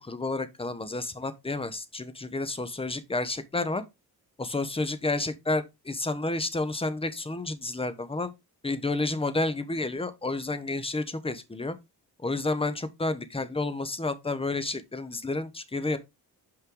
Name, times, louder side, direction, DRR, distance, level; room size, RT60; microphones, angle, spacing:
voice 1, 0.0-3.8 4.4-8.3 8.6-11.7 12.2-16.0, left 2 dB, 15° left, 1.0 m, -30 dB
5.8 x 5.6 x 3.8 m
cardioid pair, 95°, 39 cm